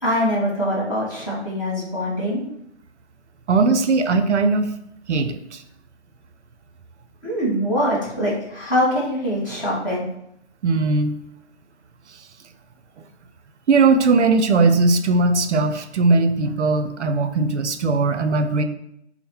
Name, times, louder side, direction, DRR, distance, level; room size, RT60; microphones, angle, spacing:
voice 1, 0.0-2.4 7.2-10.0, equal, 15° left, -7 dB, 0.9 m, -23 dB
voice 2, 3.5-4.7 5.1-5.6 10.6-11.1 13.7-18.6, right 3 dB, 75° right, 8 dB, 0.5 m, -19 dB
3.5 x 2.1 x 4.3 m, 0.74 s
figure-of-eight pair, 160°, 35 cm